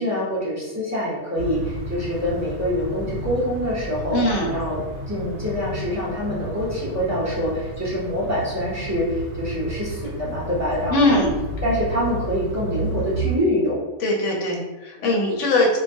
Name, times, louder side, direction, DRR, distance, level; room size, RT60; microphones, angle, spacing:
voice 1, 0.0-4.2 4.5-11.2 11.6-13.8, left 1 dB, 20° right, -8 dB, 0.4 m, -25 dB
sound 1, 1.4-13.4, right 3 dB, 75° right, 0.9 m, -32 dB
voice 2, 4.1-4.5 10.9-11.3 14.0-15.8, left 1 dB, 70° left, 0 dB, 0.9 m, -21 dB
2.3 x 2.1 x 2.6 m, 1.1 s
omnidirectional pair, 1.3 m